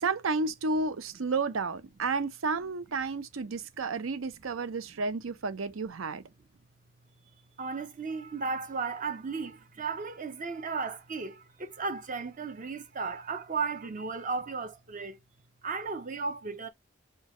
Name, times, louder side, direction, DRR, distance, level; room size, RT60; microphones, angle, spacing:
voice 1, 0.0-6.2, right 4 dB, 85° right, 0.6 m, -31 dB
voice 2, 7.6-15.2 15.6-16.7, right 4 dB, 40° right, 0.6 m, -35 dB
4.5 x 2.3 x 3.1 m
head